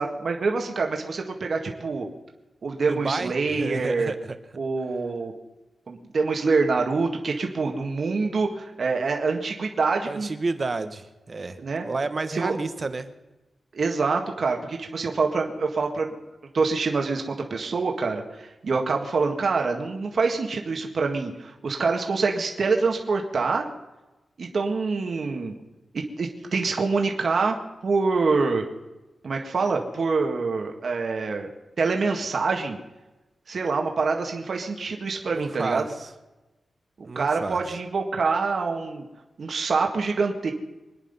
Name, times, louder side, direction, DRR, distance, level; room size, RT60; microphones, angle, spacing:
voice 1, 0.0-2.1 2.6-4.1 4.6-5.3 5.9-10.3 11.6-11.8 12.3-12.6 13.7-16.1 16.5-23.7 24.4-25.6 25.9-27.6 27.8-28.6 29.2-31.5 31.8-32.8 33.5-35.8 37.2-39.0 39.4-40.5, right 4 dB, 55° right, 2 dB, 1.8 m, -25 dB
voice 2, 2.9-4.4 10.1-11.6 11.8-13.1 35.3-36.1 37.0-37.6, right 3 dB, 40° right, 10 dB, 1.2 m, -30 dB
24.5 x 10.0 x 5.5 m, 1.1 s
wide cardioid pair, 135°, 0 cm